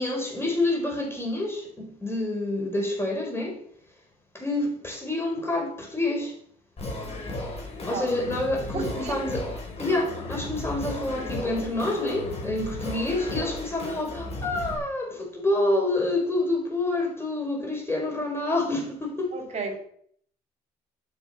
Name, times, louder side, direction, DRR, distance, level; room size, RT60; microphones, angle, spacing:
voice 1, 0.0-3.6 4.3-6.4 7.8-9.5 9.8-19.4, left 2 dB, 15° left, 5.1 m, -28 dB
Singing, 6.8-14.8, left 2 dB, 35° left, 5.4 m, -35 dB
voice 2, 8.7-9.3 19.3-19.8, right 4 dB, 40° right, 3.7 m, -32 dB
11.5 x 8.1 x 5.8 m
cardioid pair, 110°, 17 cm